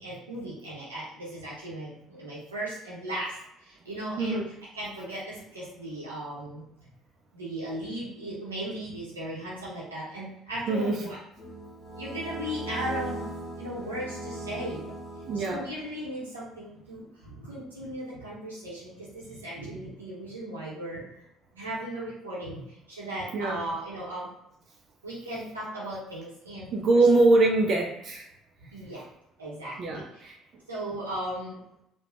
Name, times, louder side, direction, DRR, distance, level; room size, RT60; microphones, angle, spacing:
voice 1, 0.0-6.6 7.3-11.2 12.0-13.3 13.6-14.8 15.3-21.0 21.5-24.3 25.0-27.1 28.7-29.1 29.4-30.2 30.7-31.6, right 1 dB, 80° right, -9 dB, 0.7 m, -37 dB
voice 2, 4.2-4.5 10.7-11.1 15.3-15.7 23.3-23.6 26.7-28.2 29.8-30.3, right 2 dB, 45° right, 1 dB, 0.3 m, -23 dB
sound 1, 11.4-16.0, right 1 dB, 50° left, 0.8 m, -38 dB
3.1 x 2.1 x 2.3 m, 0.79 s
figure-of-eight pair, 50°, 0 cm